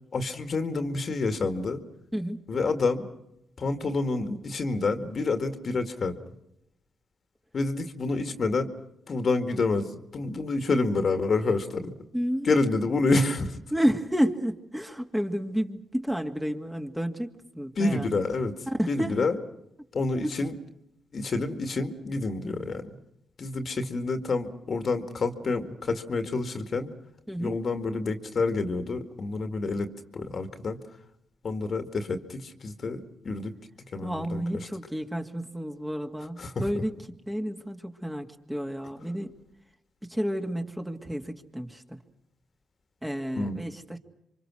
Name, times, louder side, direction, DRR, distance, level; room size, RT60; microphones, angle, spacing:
voice 1, 0.1-1.8 2.5-3.1 3.6-6.2 7.5-8.7 9.1-11.9 12.4-13.6 17.8-18.5 18.9-19.4 19.9-20.5 21.1-22.9 23.4-26.9 27.4-30.8 31.4-33.5 33.9-34.7 36.4-36.7 43.4-43.6, left 3 dB, 50° left, 7 dB, 2.1 m, -28 dB
voice 2, 12.1-12.5 13.7-18.2 18.7-19.1 20.2-20.3 27.3-27.6 34.0-36.9 37.3-39.3 40.1-42.0 43.0-44.0, equal, 10° right, 4 dB, 2.3 m, -30 dB
27.5 x 24.0 x 6.3 m, 0.82 s
supercardioid pair, 60°, 0 cm